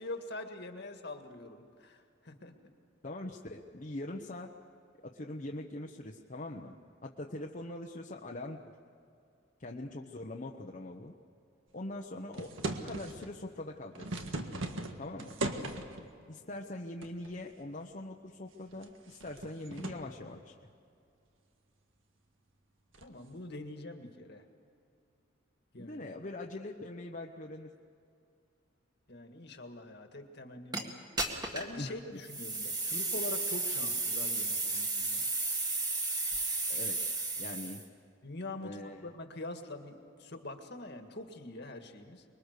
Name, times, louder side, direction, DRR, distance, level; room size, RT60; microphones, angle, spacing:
voice 1, 0.0-2.7 23.0-24.5 25.7-26.0 29.1-30.9 31.5-35.3 38.2-42.2, left 2 dB, 55° left, 5 dB, 1.9 m, -44 dB
voice 2, 3.0-4.5 5.0-6.8 7.0-8.6 9.6-11.1 11.7-14.0 15.0-15.3 16.3-20.5 25.8-27.7 31.8-31.9 36.7-37.0 37.4-37.8 38.6-39.1, left 1 dB, 40° left, 0 dB, 1.0 m, -42 dB
sound 1, 12.3-13.3 13.8-16.1 17.0-17.5 17.9-18.0 18.6-20.1 22.9-23.2, right 2 dB, 80° right, 1.7 m, -38 dB
sound 2, 30.7-30.8 31.2-31.8 32.2-37.8, right 3 dB, 20° right, 1.9 m, -33 dB
25.0 x 22.0 x 6.7 m, 2.4 s
head